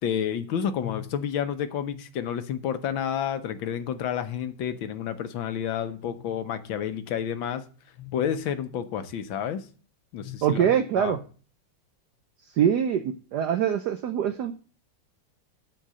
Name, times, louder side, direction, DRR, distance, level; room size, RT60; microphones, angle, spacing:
voice 1, 0.0-7.6 8.0-9.6 10.1-11.2, left 8 dB, 75° left, 10 dB, 1.7 m, -30 dB
voice 2, 10.4-11.2 12.5-14.5, right 9 dB, 65° right, 8 dB, 1.1 m, -24 dB
12.0 x 4.6 x 7.5 m, 0.39 s
omnidirectional pair, 2.2 m